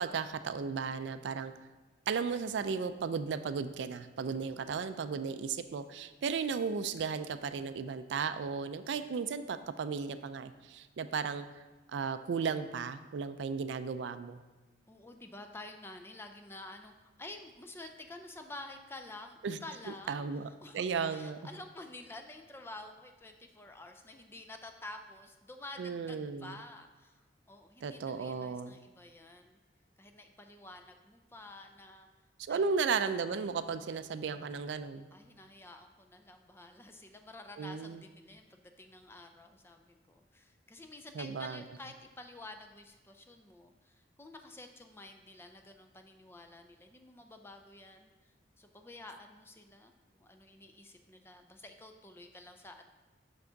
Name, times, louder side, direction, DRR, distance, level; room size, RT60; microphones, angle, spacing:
voice 1, 0.0-1.5 2.1-11.5 11.9-14.4 19.4-19.6 20.1-20.5 20.7-21.4 25.8-26.5 27.8-28.8 32.5-35.1 37.6-38.0 41.2-41.6, right 5 dB, 75° right, 11 dB, 0.3 m, -35 dB
voice 2, 4.4-4.8 14.9-16.9 17.2-20.3 20.6-20.8 21.1-29.6 30.0-32.1 32.5-32.6 35.1-52.8, left 2 dB, 15° left, 6 dB, 0.4 m, -50 dB
6.1 x 5.8 x 3.9 m, 1.2 s
head